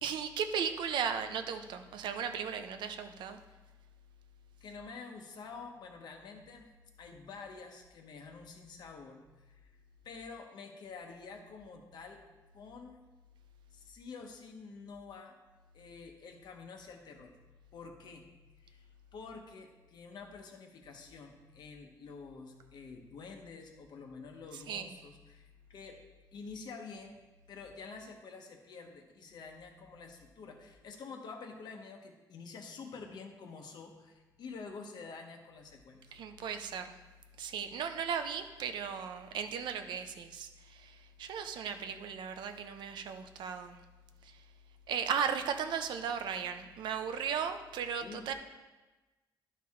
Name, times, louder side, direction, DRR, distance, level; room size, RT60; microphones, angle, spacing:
voice 1, 0.0-3.4 24.7-24.9 36.1-37.0 37.4-43.8 44.9-48.3, right 7 dB, 85° right, 8 dB, 0.6 m, -36 dB
voice 2, 4.6-9.2 9.5-9.7 10.0-12.2 12.5-13.0 13.7-15.4 15.7-17.4 17.7-18.3 18.6-18.8 19.1-26.0 26.3-27.2 27.5-36.0 48.0-48.3, left 4 dB, 65° left, 4 dB, 1.0 m, -48 dB
11.0 x 4.5 x 3.6 m, 1.2 s
cardioid pair, 135°, 8 cm